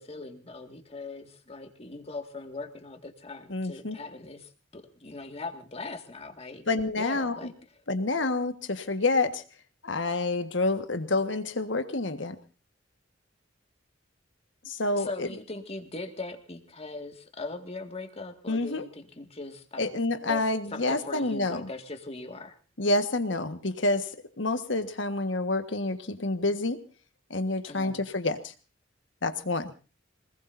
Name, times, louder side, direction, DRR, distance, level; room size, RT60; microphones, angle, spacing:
voice 1, 0.0-6.6 7.0-7.5 15.0-19.9 20.2-20.4 20.7-22.6 27.7-28.0, left 3 dB, 30° left, 6 dB, 2.0 m, -40 dB
voice 2, 3.5-3.9 6.7-7.5 7.9-9.4 9.8-12.4 14.6-15.3 18.5-18.8 19.8-21.7 22.8-24.1 24.4-26.8 27.3-28.5 29.2-29.7, left 2 dB, 65° left, 9 dB, 1.5 m, -28 dB
26.0 x 20.0 x 2.7 m, 0.34 s
head